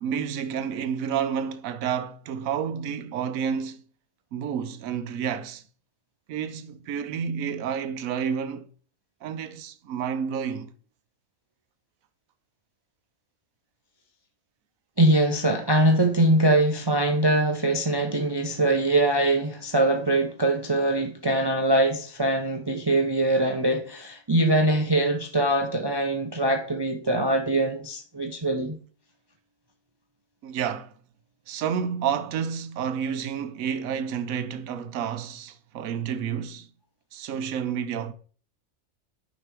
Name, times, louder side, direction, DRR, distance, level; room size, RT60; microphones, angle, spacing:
voice 1, 0.0-3.8 4.3-5.6 6.3-8.7 9.2-10.7 30.4-30.9 31.5-36.7 37.1-38.1, right 7 dB, 85° right, 1.1 m, -30 dB
voice 2, 15.0-28.8, right 1 dB, 30° right, 0.5 m, -23 dB
6.1 x 5.3 x 4.7 m
omnidirectional pair, 1.4 m